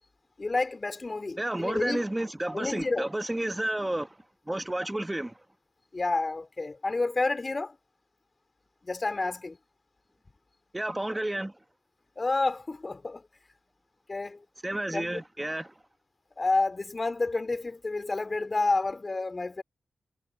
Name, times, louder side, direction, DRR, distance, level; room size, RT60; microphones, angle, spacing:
voice 1, 0.4-2.0 2.5-3.1 5.9-7.8 8.8-9.6 12.2-13.2 14.1-14.4 14.9-15.2 16.4-19.6, left 3 dB, 35° left, 4.2 m, -29 dB
voice 2, 1.4-4.2 4.5-5.4 10.7-11.5 14.6-15.7, right 1 dB, 15° right, 1.3 m, -31 dB
cardioid pair, 80°, 0 cm